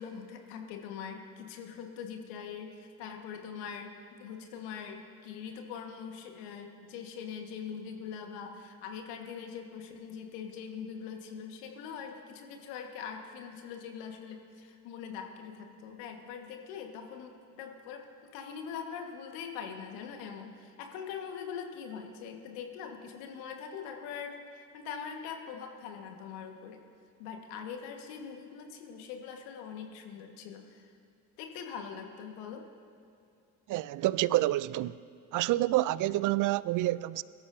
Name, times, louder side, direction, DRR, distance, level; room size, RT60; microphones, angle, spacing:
voice 1, 0.0-3.9 4.2-18.0 18.3-26.8 27.2-30.9 31.4-32.6, left 7 dB, 70° left, 1.7 m, -42 dB
voice 2, 33.7-35.0 35.3-37.2, right 16 dB, 45° right, 0.5 m, -28 dB
23.0 x 13.0 x 2.8 m
hypercardioid pair, 60°, 44 cm